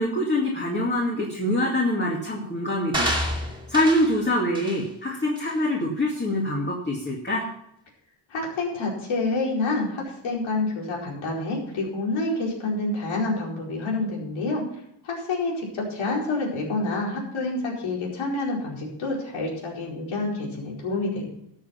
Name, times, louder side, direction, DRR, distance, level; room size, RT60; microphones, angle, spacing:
voice 1, 0.0-7.4, left 1 dB, 20° left, -2 dB, 2.4 m, -25 dB
sound 1, 2.9-4.2 4.5-4.8 5.4-5.5, equal, 10° right, 2.5 m, -28 dB
voice 2, 8.3-14.6 15.0-21.3, left 2 dB, 80° left, -2 dB, 4.8 m, -28 dB
13.5 x 7.4 x 5.8 m, 0.77 s
cardioid pair, 105°, 47 cm